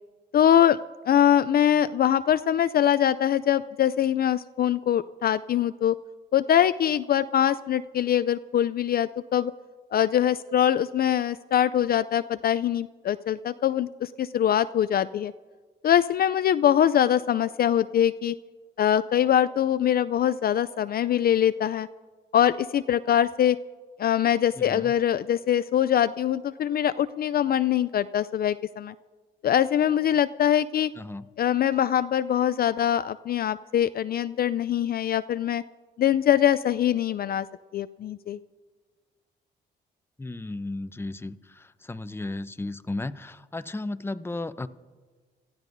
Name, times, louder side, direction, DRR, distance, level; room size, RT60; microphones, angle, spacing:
voice 1, 0.3-0.8 1.1-5.9 6.3-9.5 9.9-15.3 15.8-18.4 18.8-21.9 22.3-23.6 24.0-28.9 29.4-30.9 31.4-35.6 36.0-37.5 37.7-38.4, left 10 dB, 50° left, 14 dB, 0.4 m, -23 dB
voice 2, 24.6-24.9 31.0-31.2 40.2-44.7, left 2 dB, 10° left, 12 dB, 0.7 m, -34 dB
28.0 x 14.5 x 2.6 m, 1.4 s
cardioid pair, 70°, 19 cm